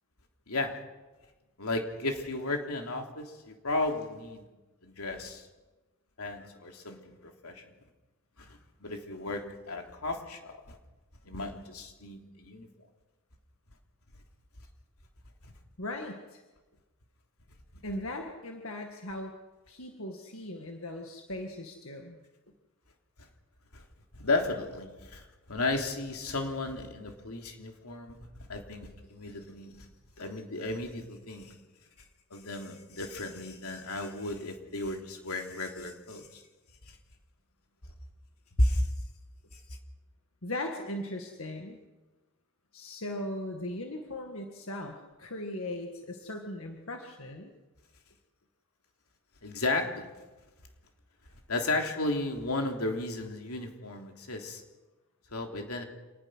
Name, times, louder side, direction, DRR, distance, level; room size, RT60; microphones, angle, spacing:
voice 1, 0.5-0.8 1.6-4.4 4.8-5.4 6.2-7.7 8.4-10.8 11.2-12.7 23.7-23.8 24.1-29.9 30.2-31.5 32.3-36.4 38.6-38.9 49.4-50.1 51.5-54.6 55.3-55.8, left 2 dB, 90° left, 3 dB, 3.2 m, -34 dB
voice 2, 15.8-16.4 17.8-19.3 19.7-22.2 40.4-41.8 42.7-47.5, left 1 dB, 65° left, 3 dB, 2.0 m, -38 dB
27.0 x 19.5 x 6.3 m, 1.2 s
head